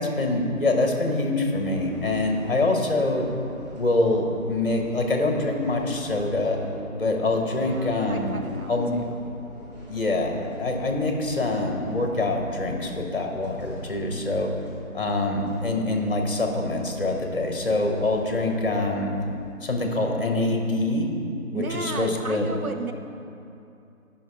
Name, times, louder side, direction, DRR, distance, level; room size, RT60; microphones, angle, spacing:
voice 1, 0.0-3.3 3.8-6.6 7.0-8.4 8.7-8.9 9.9-14.5 14.9-19.1 19.6-21.1 21.5-22.5, left 2 dB, 40° left, 2 dB, 1.1 m, -25 dB
sound 1, 1.5-19.5, equal, 30° right, 1.9 m, -43 dB
voice 2, 7.5-9.2 21.5-22.9, right 3 dB, 90° right, 5 dB, 0.9 m, -34 dB
9.4 x 5.7 x 4.7 m, 2.7 s
figure-of-eight pair, 170°, 42 cm